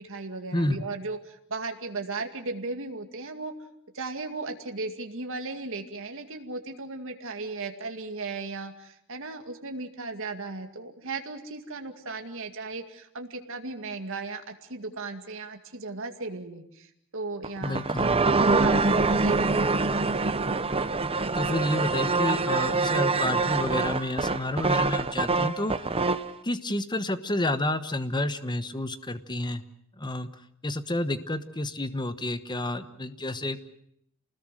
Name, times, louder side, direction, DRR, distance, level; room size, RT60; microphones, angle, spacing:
voice 1, 0.0-3.5 3.9-17.8 18.6-20.1, right 3 dB, 60° right, 5 dB, 2.2 m, -36 dB
voice 2, 0.5-0.9 17.6-18.3 21.3-25.8 26.4-29.6 30.0-30.3 30.6-33.6, left 1 dB, 20° left, 11 dB, 1.1 m, -30 dB
sound 1, 17.4-26.3, right 3 dB, 25° right, 0.9 m, -25 dB
28.5 x 20.0 x 7.7 m, 0.73 s
head